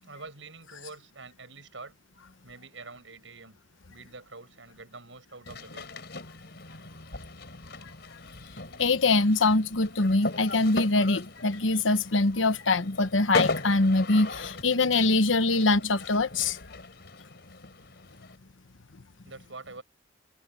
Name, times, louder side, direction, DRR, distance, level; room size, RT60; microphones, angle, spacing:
voice 1, 0.0-1.9 2.4-3.6 3.9-5.9 16.2-16.3 19.2-19.8, right 3 dB, 80° right, 6.9 m, -46 dB
sound 1, 5.5-18.4, left 2 dB, 60° left, 4.8 m, -37 dB
voice 2, 8.8-16.6, left 3 dB, 90° left, 1.2 m, -23 dB
head